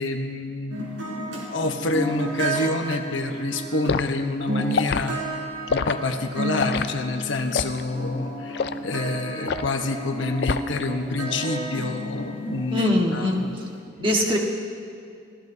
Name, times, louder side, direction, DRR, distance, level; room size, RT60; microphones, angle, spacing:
voice 1, 0.0-5.2 5.7-13.6, left 2 dB, 80° left, 5 dB, 1.1 m, -28 dB
sound 1, 0.7-13.7, right 1 dB, 85° right, 4.0 m, -33 dB
Liquid, 3.9-4.1 4.7-5.1 5.7-6.0 6.6-6.9 7.5-7.8 8.5-8.8 9.5-9.7 10.4-10.8 11.2-11.5, left 5 dB, 55° left, 0.4 m, -26 dB
voice 2, 12.7-13.5 14.0-14.4, left 1 dB, 25° right, -1 dB, 1.7 m, -22 dB
28.5 x 15.5 x 2.8 m, 2.5 s
head